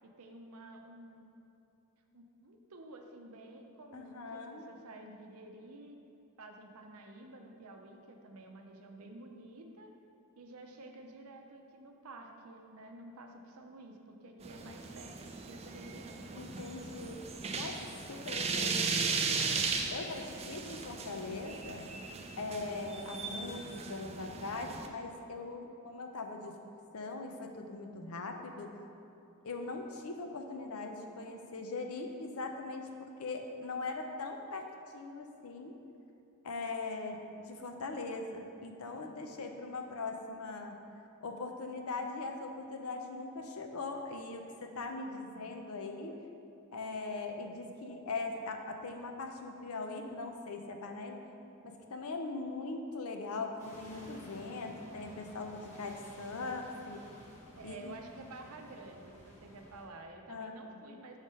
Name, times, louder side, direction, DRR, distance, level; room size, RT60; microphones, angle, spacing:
voice 1, 0.0-1.3 2.1-6.0 6.4-9.9 10.4-16.2 45.3-45.8 57.6-61.2, right 2 dB, 70° right, 3 dB, 0.6 m, -51 dB
voice 2, 3.9-4.7 16.4-19.0 19.3-19.4 19.9-21.9 22.4-26.6 26.9-28.7 29.4-35.7 36.4-40.8 41.2-46.2 46.7-51.2 51.6-57.0 57.6-58.0 60.3-60.8, left 3 dB, 75° left, 4 dB, 0.6 m, -41 dB
sound 1, 14.4-24.9, right 4 dB, 30° right, 0.4 m, -37 dB
sound 2, 53.6-59.9, equal, 35° left, 1.0 m, -54 dB
6.3 x 3.6 x 5.4 m, 2.7 s
head